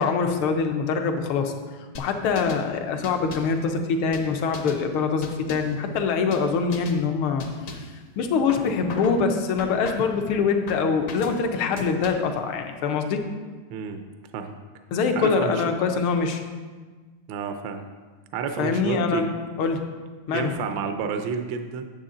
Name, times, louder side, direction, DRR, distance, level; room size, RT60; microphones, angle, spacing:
voice 1, 0.0-1.5 2.0-7.5 7.7-7.8 8.2-13.2 14.9-16.4 18.6-19.3 19.6-19.8 20.3-20.5, left 5 dB, 80° left, 5 dB, 1.7 m, -24 dB
sound 1, 1.9-2.7 3.0-3.6 4.1-4.8 5.2-5.8 6.3-6.5 6.7-7.0 7.4-8.0 8.5-9.2 9.6-10.2 10.7-11.4 11.8-12.4, left 3 dB, 55° left, 0.9 m, -38 dB
voice 2, 13.7-14.0 14.3-14.5 15.2-15.6 17.3-17.8 18.3-19.3 20.3-21.8, right 6 dB, 75° right, 6 dB, 1.2 m, -29 dB
9.8 x 7.3 x 3.8 m, 1.4 s
omnidirectional pair, 2.4 m